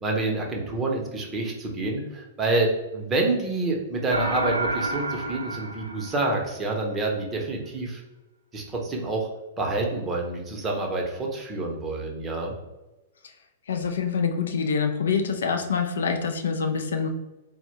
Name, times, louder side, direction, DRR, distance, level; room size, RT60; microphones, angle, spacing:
voice 1, 0.0-8.0 8.5-9.3 9.6-12.6, right 2 dB, 20° right, 1 dB, 0.7 m, -27 dB
sound 1, 4.1-6.7, right 2 dB, 80° right, 0.4 m, -30 dB
voice 2, 13.7-17.1, left 5 dB, 65° left, 6 dB, 0.4 m, -26 dB
4.2 x 2.1 x 2.9 m, 1.1 s
figure-of-eight pair, 105°, 0 cm